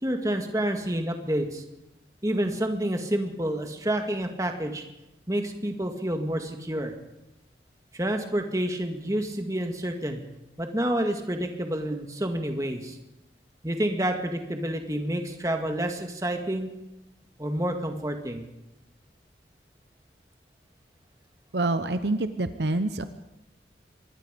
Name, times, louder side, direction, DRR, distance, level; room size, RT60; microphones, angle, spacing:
voice 1, 0.0-1.6 2.2-4.8 5.3-6.9 7.9-10.2 10.6-13.0 13.6-16.7 17.4-18.4, right 1 dB, 20° right, 4 dB, 2.0 m, -28 dB
voice 2, 21.5-23.0, right 2 dB, 70° right, 10 dB, 0.9 m, -26 dB
25.0 x 20.5 x 5.3 m, 0.92 s
head